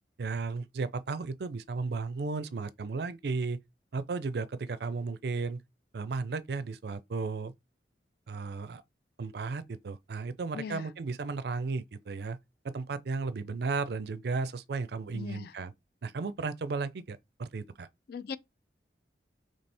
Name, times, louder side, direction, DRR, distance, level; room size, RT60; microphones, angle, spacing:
voice 1, 0.2-3.6 3.9-5.6 5.9-7.5 8.3-8.8 9.2-12.4 12.6-15.7 16.0-17.9, right 4 dB, 60° right, 0.4 m, -34 dB
voice 2, 10.5-10.9 15.1-15.5 18.1-18.4, left 6 dB, 55° left, 0.3 m, -39 dB
3.3 x 3.2 x 4.2 m
head